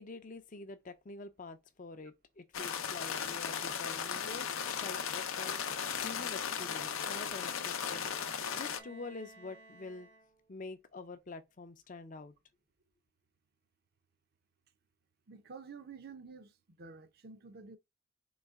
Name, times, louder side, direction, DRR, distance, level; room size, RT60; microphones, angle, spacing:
voice 1, 0.0-4.5 4.8-8.1 8.5-10.1 10.5-12.3, left 3 dB, 40° left, 0.5 m, -47 dB
sound 1, 2.5-8.8, left 7 dB, 80° left, 0.6 m, -36 dB
Bowed string instrument, 6.5-10.6, right 2 dB, 75° right, 1.7 m, -58 dB
voice 2, 15.3-17.8, right 5 dB, 50° right, 0.6 m, -50 dB
4.0 x 3.2 x 3.5 m
head